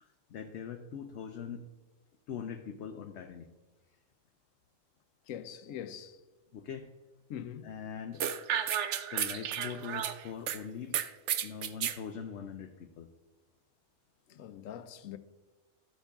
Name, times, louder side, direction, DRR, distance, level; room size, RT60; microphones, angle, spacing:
voice 1, 0.0-1.6 2.3-3.5 6.5-6.9 7.6-8.2 9.1-11.0 11.4-13.1 14.3-14.4, left 7 dB, 65° left, 0.9 m, -42 dB
voice 2, 5.3-6.2 7.3-7.7 14.4-15.2, left 9 dB, 85° left, 1.1 m, -42 dB
sound 1, 8.2-10.6 10.9-12.0, right 9 dB, 70° right, 0.9 m, -32 dB
13.5 x 8.3 x 3.6 m
omnidirectional pair, 1.3 m